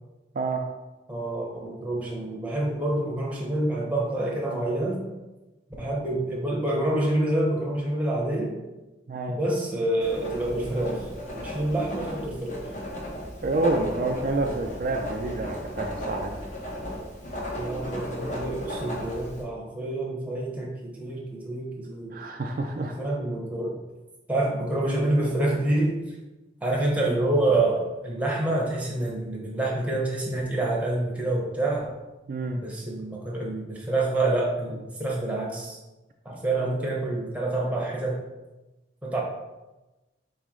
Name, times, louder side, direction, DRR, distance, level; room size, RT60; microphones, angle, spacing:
voice 1, 1.1-5.0 5.8-8.6 9.3-12.6 17.6-22.2 22.8-23.8 24.3-26.2 26.6-31.9 32.5-35.8 36.2-38.2 39.0-39.2, right 2 dB, 10° right, -3 dB, 0.8 m, -27 dB
voice 2, 9.1-9.4 13.4-16.3 22.1-22.9 32.3-32.6, right 2 dB, 45° right, 2 dB, 0.3 m, -28 dB
Writing, 10.0-19.4, equal, 40° left, 0.9 m, -35 dB
4.6 x 3.1 x 3.6 m, 1.1 s
head